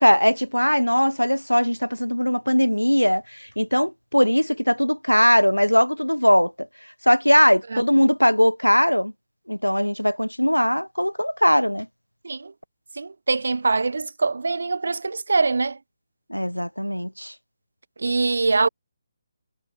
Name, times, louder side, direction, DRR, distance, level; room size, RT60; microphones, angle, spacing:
voice 1, 0.0-6.7 7.0-9.1 9.5-11.9 16.3-17.3, equal, 90° left, 3.3 m, -20 dB
voice 2, 12.9-15.8 18.0-18.7, right 3 dB, 60° right, 1.1 m, -23 dB
figure-of-eight pair, 145°, 0 cm